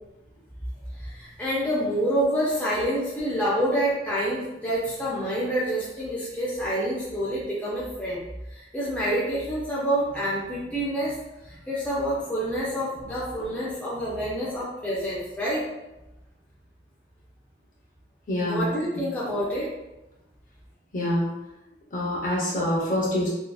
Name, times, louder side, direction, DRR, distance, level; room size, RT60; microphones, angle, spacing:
voice 1, 1.0-8.2 8.5-11.2 11.4-15.7 18.4-19.7, equal, 10° left, -8 dB, 0.4 m, -27 dB
voice 2, 18.3-18.7 18.9-19.0 20.9-21.3 21.9-23.3, left 1 dB, 45° left, -4 dB, 0.7 m, -26 dB
2.7 x 2.2 x 2.2 m, 0.96 s
head